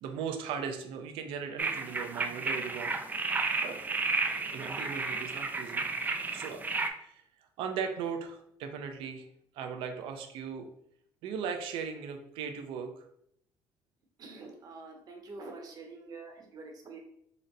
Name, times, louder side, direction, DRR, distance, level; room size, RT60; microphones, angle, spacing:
voice 1, 0.0-2.9 3.6-3.8 4.5-5.8 6.3-6.6 7.0-7.2 7.6-9.3 9.5-10.7 11.2-13.1, right 6 dB, 80° right, 5 dB, 0.5 m, -38 dB
sound 1, 1.6-6.9, right 3 dB, 20° right, 0.3 m, -32 dB
voice 2, 14.2-17.0, right 3 dB, 45° right, 3 dB, 0.9 m, -46 dB
3.9 x 2.1 x 3.9 m, 0.72 s
cardioid pair, 120°, 9 cm